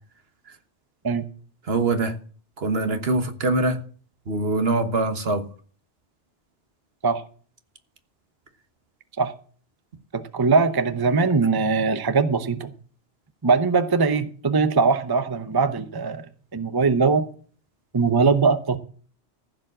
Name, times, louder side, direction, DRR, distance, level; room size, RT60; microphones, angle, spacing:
voice 1, 1.7-2.1 2.6-3.8 4.3-5.5, right 2 dB, 60° right, 1.5 m, -23 dB
voice 2, 10.1-12.7 13.4-16.3 16.5-17.2 17.9-18.8, right 4 dB, 25° right, 0.7 m, -21 dB
15.0 x 5.1 x 7.8 m
omnidirectional pair, 1.2 m